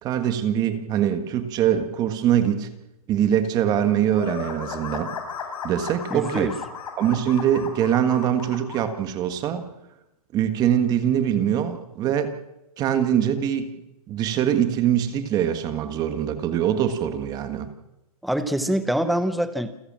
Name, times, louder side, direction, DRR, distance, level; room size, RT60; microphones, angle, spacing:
voice 1, 0.0-2.7 3.1-5.1 5.6-6.5 7.0-9.6 10.3-12.3 12.8-13.7 14.1-17.7, right 9 dB, 20° right, 9 dB, 1.7 m, -23 dB
sound 1, 4.1-8.9, left 6 dB, 70° left, 6.8 m, -35 dB
voice 2, 6.1-6.5 18.2-19.7, right 1 dB, ahead, 10 dB, 0.8 m, -24 dB
28.5 x 14.5 x 7.6 m, 0.93 s
hypercardioid pair, 165°, 19 cm